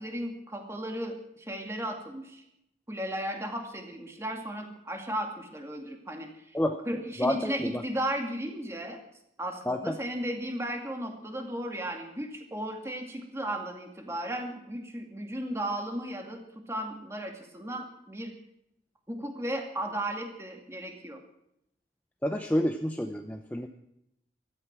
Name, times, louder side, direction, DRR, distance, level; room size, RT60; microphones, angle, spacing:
voice 1, 0.0-2.4 2.9-6.6 6.9-9.0 9.4-16.4 16.7-18.3 19.1-21.2, right 1 dB, 15° right, 3 dB, 2.3 m, -35 dB
voice 2, 6.5-7.8 9.7-10.0 22.2-23.7, left 1 dB, 10° left, 5 dB, 0.7 m, -29 dB
16.0 x 13.0 x 6.1 m, 0.80 s
head